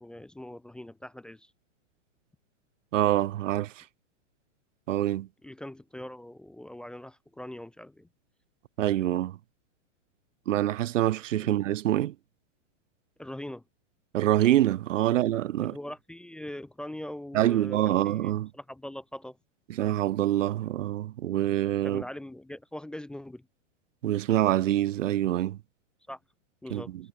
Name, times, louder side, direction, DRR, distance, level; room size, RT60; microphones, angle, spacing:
voice 1, 0.0-1.5 5.4-8.1 11.4-11.5 13.2-13.6 15.1-15.2 15.6-19.4 21.8-23.5 26.1-26.2 26.6-26.9, left 1 dB, ahead, 0.6 m, -41 dB
voice 2, 2.9-3.8 4.9-5.3 8.8-9.4 10.5-12.1 14.1-15.8 17.3-18.5 19.8-22.0 24.0-25.6 26.7-26.8, right 13 dB, 85° right, 0.8 m, -25 dB
hypercardioid pair, 155°, 37 cm